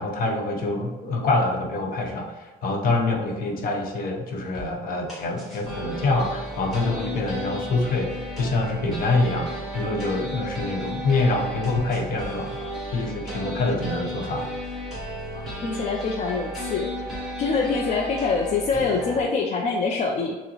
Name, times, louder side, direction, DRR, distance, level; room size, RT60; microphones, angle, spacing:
voice 1, 0.0-9.5 9.7-14.5, left 2 dB, 60° left, 1 dB, 0.8 m, -25 dB
sound 1, 4.5-4.6 5.1-19.2, equal, ahead, 1.4 m, -34 dB
voice 2, 15.3-16.9 17.4-20.4, left 4 dB, 45° left, 0 dB, 0.4 m, -25 dB
6.1 x 2.0 x 3.0 m, 1.3 s
cardioid pair, 110°, 17 cm